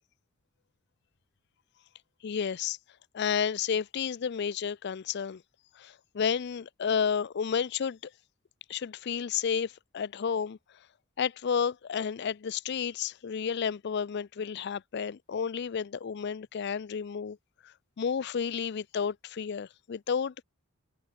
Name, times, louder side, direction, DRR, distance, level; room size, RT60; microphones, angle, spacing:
voice 1, 2.2-2.8 3.1-5.4 5.8-8.1 8.7-10.6 11.2-17.4 17.6-20.4, left 7 dB, 55° left, 0.4 m, -31 dB
head